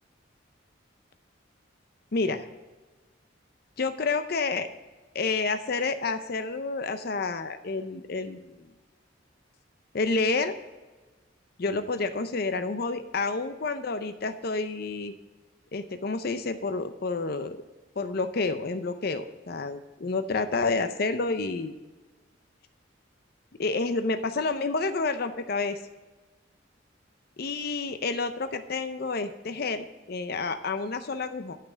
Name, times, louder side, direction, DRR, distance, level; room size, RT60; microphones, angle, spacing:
voice 1, 2.1-2.5 3.8-4.7 5.1-8.7 9.9-10.6 11.6-15.1 15.7-17.6 18.0-21.7 23.6-25.8 27.4-31.6, left 3 dB, 50° left, 10 dB, 0.6 m, -29 dB
8.9 x 5.8 x 6.2 m, 1.2 s
head